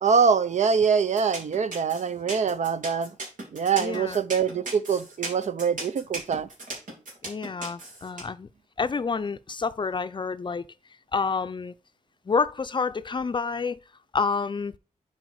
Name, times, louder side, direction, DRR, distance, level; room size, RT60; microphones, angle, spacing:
voice 1, 0.0-3.1 3.5-6.5, right 6 dB, 65° right, 0.6 m, -24 dB
sound 1, 1.2-8.2, right 2 dB, 85° right, 3.0 m, -36 dB
voice 2, 3.8-4.2 7.2-8.5 8.8-10.7 11.1-11.7 12.3-13.8 14.1-14.7, left 5 dB, 35° left, 0.5 m, -28 dB
7.7 x 4.4 x 4.7 m
wide cardioid pair, 100°, 13 cm